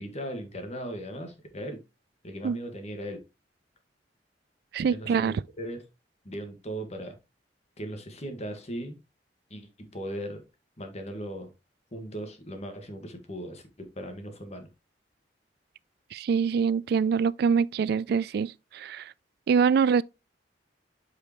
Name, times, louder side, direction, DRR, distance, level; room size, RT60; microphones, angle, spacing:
voice 1, 0.0-1.8 2.2-3.2 4.9-5.8 6.3-7.2 7.8-9.0 9.5-10.4 10.8-11.5 11.9-14.7, right 1 dB, 40° left, 1.6 m, -38 dB
voice 2, 4.7-5.4 16.1-19.1 19.5-20.0, right 6 dB, 65° right, 0.3 m, -24 dB
8.3 x 4.9 x 3.0 m
head